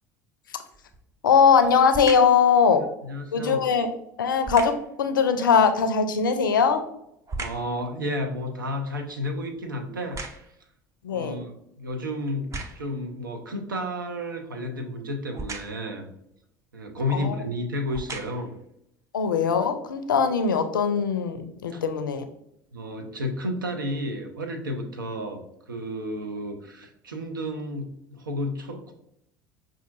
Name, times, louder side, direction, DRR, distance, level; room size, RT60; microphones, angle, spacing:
sound 1, 0.7-1.1 1.9-2.4 4.4-4.9 6.3-7.8 8.2-10.7 11.4-11.5 12.3-13.0 15.3-15.9 16.9-17.1 17.8-18.6 19.2-19.3, right 3 dB, 30° right, 0.6 m, -38 dB
voice 1, 1.2-2.8 3.3-3.9 4.2-6.8 11.0-11.4 17.1-17.4 19.1-22.3, left 6 dB, 80° left, 8 dB, 0.4 m, -21 dB
voice 2, 3.0-3.7 7.4-10.2 11.1-12.5 12.8-16.1 16.7-18.5 21.7-21.8 22.7-25.4 25.7-28.9, left 1 dB, 85° right, 5 dB, 0.5 m, -32 dB
5.4 x 2.5 x 2.5 m, 0.77 s
figure-of-eight pair, 65°, 11 cm